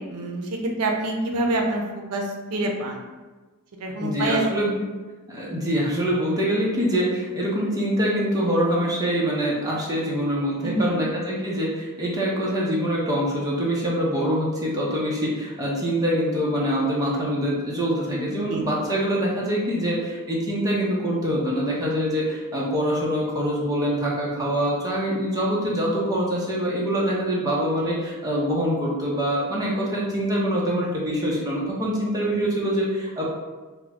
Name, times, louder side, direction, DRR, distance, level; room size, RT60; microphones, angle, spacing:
voice 1, 0.0-3.0 3.8-4.4 10.6-11.0 18.3-18.6, right 2 dB, 85° right, 2 dB, 0.5 m, -26 dB
voice 2, 4.0-4.8 5.3-33.2, equal, 15° right, -5 dB, 0.6 m, -24 dB
3.6 x 2.1 x 3.4 m, 1.3 s
head